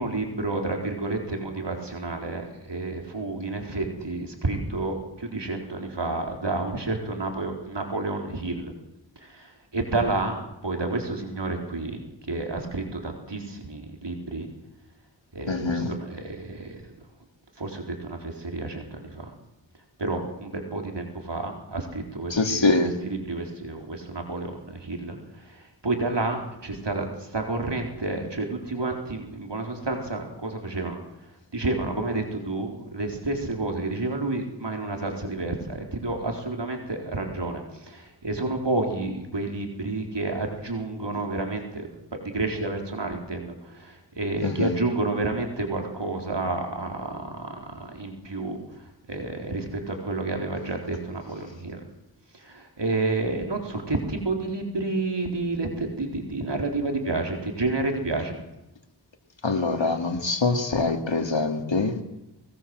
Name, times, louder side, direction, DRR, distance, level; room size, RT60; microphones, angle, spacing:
voice 1, 0.0-8.7 9.2-12.0 12.3-14.5 15.3-16.9 17.6-19.3 20.0-31.0 31.5-51.8 52.3-58.4, right 2 dB, 70° right, 3 dB, 4.3 m, -30 dB
voice 2, 15.5-15.9 22.3-22.9 44.4-44.7 59.4-62.0, left 3 dB, 90° left, 5 dB, 2.6 m, -24 dB
23.0 x 19.0 x 7.9 m, 0.91 s
wide cardioid pair, 50°, 43 cm